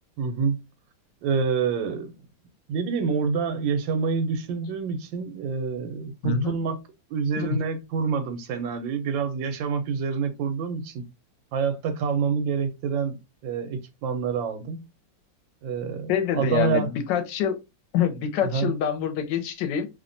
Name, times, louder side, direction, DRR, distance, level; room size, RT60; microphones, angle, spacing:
voice 1, 0.2-0.6 1.2-2.1 2.7-6.8 7.1-11.0 11.5-13.2 13.4-14.9 15.6-16.9 18.4-18.7, right 5 dB, 85° right, 1.3 m, -27 dB
voice 2, 6.2-6.6 7.4-7.6 16.1-17.6 17.9-19.9, left 8 dB, 75° left, 1.2 m, -26 dB
3.1 x 2.1 x 2.5 m
omnidirectional pair, 2.0 m